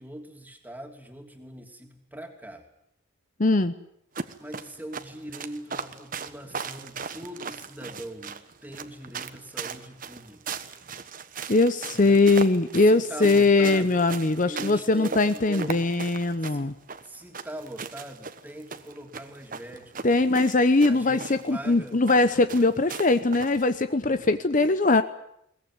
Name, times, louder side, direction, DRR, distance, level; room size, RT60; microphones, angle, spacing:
voice 1, 0.0-2.7 4.4-10.6 11.9-12.2 12.8-14.1 14.4-15.8 16.4-16.8 17.0-19.9 20.9-22.0 24.0-24.3, right 1 dB, 10° right, 4 dB, 3.1 m, -41 dB
voice 2, 3.4-3.7 11.5-16.7 20.0-25.0, left 3 dB, 40° left, 11 dB, 0.9 m, -21 dB
sound 1, 4.1-23.7, right 5 dB, 45° right, 1.3 m, -38 dB
21.5 x 19.0 x 9.5 m, 0.74 s
head